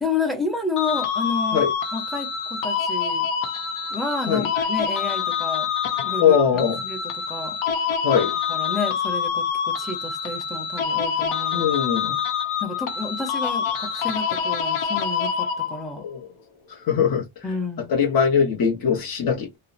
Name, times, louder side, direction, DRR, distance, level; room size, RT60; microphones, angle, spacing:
voice 1, 0.0-3.3 3.9-5.7 6.0-7.6 8.5-11.7 12.1-12.2 12.6-16.1 17.4-17.9, left 3 dB, ahead, 0.5 m, -30 dB
sound 1, 0.8-16.0, left 7 dB, 85° left, 0.8 m, -26 dB
voice 2, 6.2-6.7 8.0-8.3 11.5-12.1 16.0-16.2 16.9-17.2 17.9-19.6, left 7 dB, 45° left, 0.7 m, -21 dB
2.8 x 2.1 x 2.4 m
cardioid pair, 150°, 48 cm